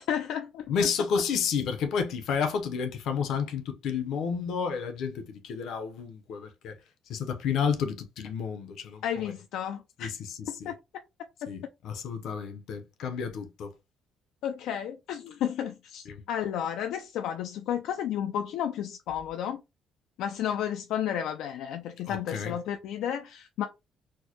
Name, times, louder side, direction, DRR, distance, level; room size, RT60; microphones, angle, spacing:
voice 1, 0.0-0.6 9.0-10.1 10.5-10.7 14.4-19.6 20.2-23.7, left 9 dB, 85° left, 0.4 m, -32 dB
voice 2, 0.7-6.8 7.1-9.0 10.0-10.3 10.6-10.7 11.5-13.7 16.1-16.2 22.1-22.6, left 6 dB, 70° left, 0.8 m, -31 dB
4.4 x 2.1 x 2.9 m
cardioid pair, 160°, 0 cm